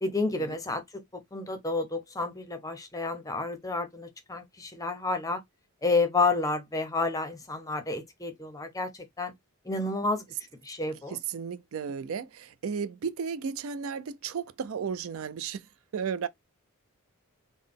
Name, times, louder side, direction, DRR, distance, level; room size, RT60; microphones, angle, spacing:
voice 1, 0.0-5.4 5.8-9.3 9.7-10.2 10.6-11.2, left 3 dB, 15° left, 0.6 m, -30 dB
voice 2, 11.1-15.6 15.9-16.3, right 6 dB, 65° right, 0.4 m, -34 dB
3.9 x 2.0 x 3.4 m
head